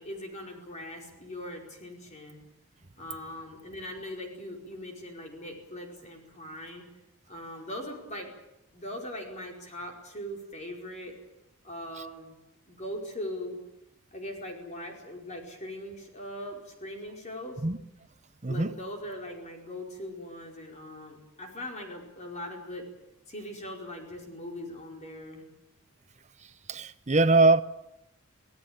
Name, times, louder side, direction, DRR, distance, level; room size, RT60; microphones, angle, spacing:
voice 1, 0.0-2.4 3.0-6.9 7.3-8.3 8.7-11.2 11.6-12.3 12.7-13.6 14.1-17.6 18.5-22.9 23.3-25.4, left 1 dB, 30° left, 4.9 m, -40 dB
voice 2, 18.4-18.7 26.4-27.6, right 3 dB, 30° right, 0.9 m, -23 dB
26.5 x 17.5 x 8.9 m
head